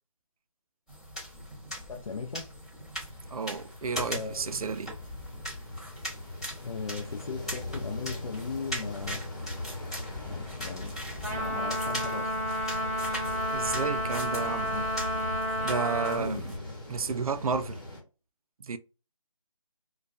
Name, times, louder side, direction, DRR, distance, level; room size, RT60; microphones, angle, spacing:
sound 1, 0.9-16.6, equal, 10° left, 0.8 m, -40 dB
voice 1, 1.9-2.5 4.1-4.7 6.6-9.2 10.2-10.9 11.3-12.3 14.7-14.9 16.1-16.4, left 5 dB, 75° left, 0.5 m, -38 dB
sound 2, 3.0-18.0, left 2 dB, 35° left, 1.1 m, -41 dB
voice 2, 3.3-4.9 13.5-14.9 15.3-15.4 15.6-16.6 16.9-17.8 18.6-18.8, right 5 dB, 85° right, 0.4 m, -32 dB
Trumpet, 11.2-16.2, equal, 25° right, 0.7 m, -31 dB
2.3 x 2.2 x 2.5 m
figure-of-eight pair, 175°, 18 cm